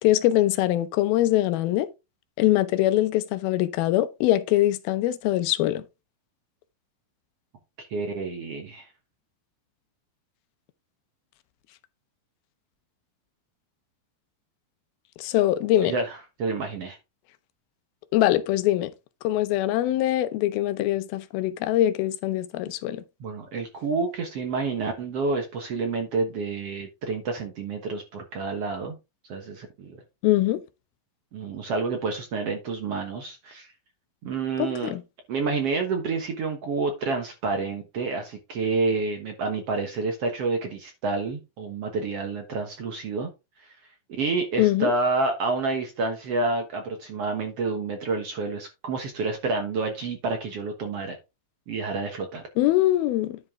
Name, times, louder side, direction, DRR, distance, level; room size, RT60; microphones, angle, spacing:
voice 1, 0.0-1.9 2.4-5.8 15.2-15.9 18.1-18.9 19.2-23.0 30.2-30.6 34.6-35.0 44.6-44.9 52.6-53.4, left 14 dB, 90° left, 2.6 m, -23 dB
voice 2, 7.8-8.9 15.8-17.0 23.2-29.0 29.3-30.0 31.3-33.7 34.2-34.9 35.3-43.3 43.6-43.7 44.2-51.2 51.7-52.4, right 3 dB, 60° right, 1.7 m, -29 dB
10.5 x 5.3 x 3.6 m
omnidirectional pair, 4.2 m